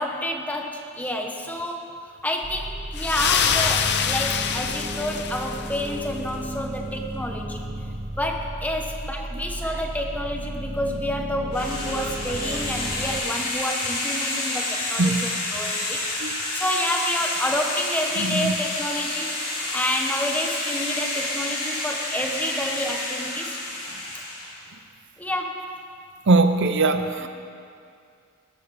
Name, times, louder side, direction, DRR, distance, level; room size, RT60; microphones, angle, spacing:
voice 1, 0.0-7.6 8.2-16.1 16.5-19.4 19.7-23.6 25.2-25.7 27.2-27.3, left 1 dB, 5° left, 2 dB, 1.1 m, -29 dB
sound 1, 2.4-13.2, right 1 dB, 15° right, 0.6 m, -34 dB
sound 2, 3.0-6.0, left 7 dB, 50° left, 0.7 m, -25 dB
sound 3, 11.5-24.6, left 2 dB, 80° left, 4.1 m, -29 dB
voice 2, 18.2-18.5 26.3-27.3, right 3 dB, 55° right, 8 dB, 0.6 m, -21 dB
18.0 x 13.5 x 4.2 m, 2.3 s
head